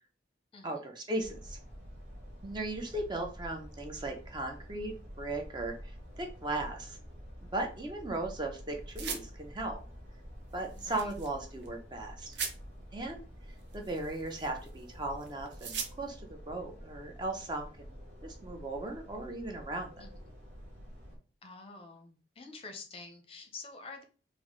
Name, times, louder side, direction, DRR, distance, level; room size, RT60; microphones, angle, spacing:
voice 1, 0.6-1.6 2.4-7.0 7.5-9.8 10.5-12.4 12.9-13.2 13.7-18.0 18.2-20.1, right 2 dB, 25° right, 3 dB, 0.5 m, -37 dB
sound 1, 1.2-21.2, equal, 40° right, 1.0 m, -48 dB
sound 2, 9.0-9.2 10.6-11.3 11.6-11.7 12.3-12.5 13.6-14.8 15.2-15.9, right 6 dB, 70° right, 0.6 m, -39 dB
voice 2, 10.8-11.1 20.0-20.1 21.4-24.0, left 3 dB, 30° left, 4 dB, 0.5 m, -48 dB
4.0 x 2.0 x 3.0 m, 0.37 s
head